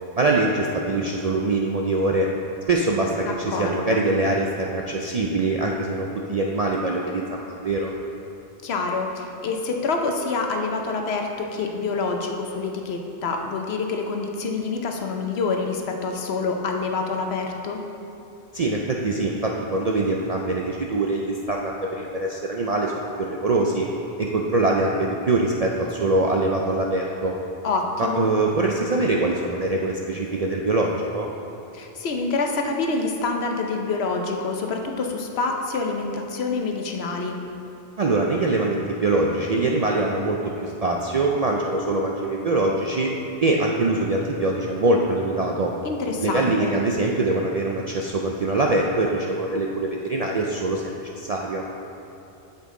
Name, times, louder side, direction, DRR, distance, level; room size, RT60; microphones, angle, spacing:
voice 1, 0.1-2.3 2.7-7.9 18.5-23.9 24.2-27.3 28.0-31.3 38.0-43.1 43.4-45.7 46.2-51.6, right 2 dB, 55° right, -1 dB, 0.4 m, -23 dB
voice 2, 3.3-4.1 8.6-17.8 27.6-28.3 31.7-37.4 45.8-46.7, left 4 dB, 70° left, 3 dB, 0.9 m, -27 dB
8.1 x 6.9 x 3.7 m, 2.8 s
omnidirectional pair, 1.2 m